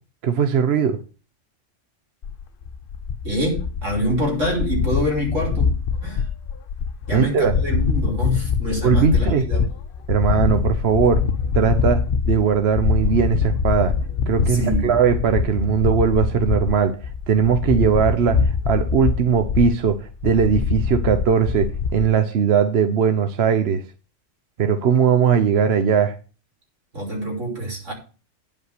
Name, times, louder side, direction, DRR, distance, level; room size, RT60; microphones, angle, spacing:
voice 1, 0.2-1.0 7.1-7.5 8.8-9.5 10.1-11.2 11.5-12.0 12.3-13.9 14.3-17.0 17.3-23.8 24.6-26.1, right 7 dB, 60° right, 8 dB, 1.0 m, -19 dB
sound 1, 2.2-22.1, left 6 dB, 55° left, 0.8 m, -24 dB
voice 2, 3.2-5.7 6.0-6.2 7.1-9.6 11.8-11.9 14.5-14.9 26.9-27.9, equal, 80° right, 0 dB, 3.6 m, -25 dB
9.6 x 5.3 x 6.6 m, 0.35 s
omnidirectional pair, 1.3 m